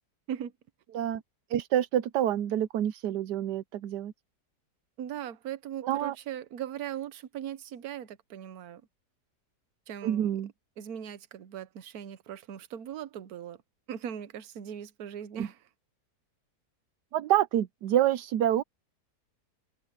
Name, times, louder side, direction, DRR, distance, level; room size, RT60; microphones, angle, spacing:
voice 1, 1.5-4.1 5.8-6.1 10.0-10.5 15.4-15.5 17.1-18.6, right 11 dB, 85° right, 1.3 m, -27 dB
voice 2, 5.0-8.8 9.9-10.3 10.8-13.6 13.9-15.6, right 9 dB, 65° right, 1.4 m, -39 dB
omnidirectional pair, 1.8 m